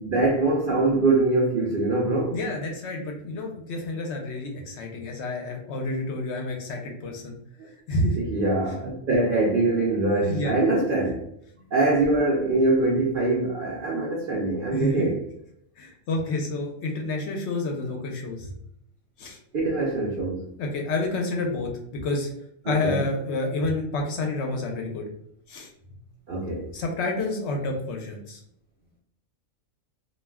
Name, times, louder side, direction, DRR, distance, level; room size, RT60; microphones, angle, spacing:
voice 1, 0.0-2.4 8.2-11.2 11.7-15.2 19.5-20.5 22.7-23.0 26.3-26.7, right 2 dB, 65° right, 0.5 m, -23 dB
voice 2, 2.3-7.3 7.9-8.2 10.2-10.6 14.7-15.1 15.8-18.5 19.2-19.4 20.6-22.3 22.7-25.1 25.5-25.7 26.7-28.4, left 2 dB, 65° left, 0.8 m, -29 dB
2.3 x 2.2 x 3.3 m
omnidirectional pair, 1.4 m